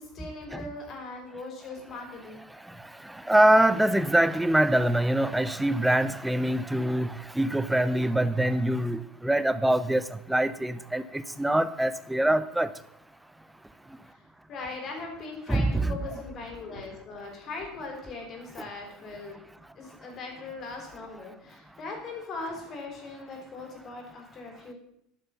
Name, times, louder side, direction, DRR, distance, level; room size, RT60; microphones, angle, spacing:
voice 1, 0.0-2.4 14.1-14.2 14.5-19.4 19.8-24.7, left 3 dB, 45° left, 2 dB, 5.3 m, -40 dB
voice 2, 3.1-10.0 10.3-12.7 15.5-16.0 18.6-18.7, right 1 dB, 5° right, 14 dB, 0.9 m, -24 dB
11.5 x 10.5 x 5.7 m, 0.76 s
hypercardioid pair, 75°, 0 cm